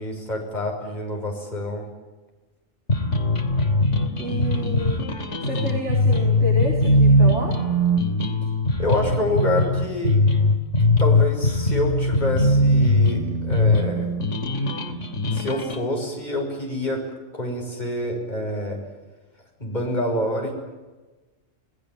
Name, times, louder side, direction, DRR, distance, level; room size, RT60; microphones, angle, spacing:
voice 1, 0.0-1.8 8.8-10.2 11.0-14.1 15.3-17.0 17.3-18.8 19.6-20.5, left 1 dB, 35° left, 1 dB, 6.2 m, -27 dB
sound 1, 2.9-15.8, left 1 dB, 65° left, 3.1 m, -20 dB
voice 2, 4.2-5.0 5.4-7.6, right 1 dB, 60° right, -2 dB, 4.5 m, -30 dB
28.5 x 19.0 x 8.8 m, 1.2 s
omnidirectional pair, 1.3 m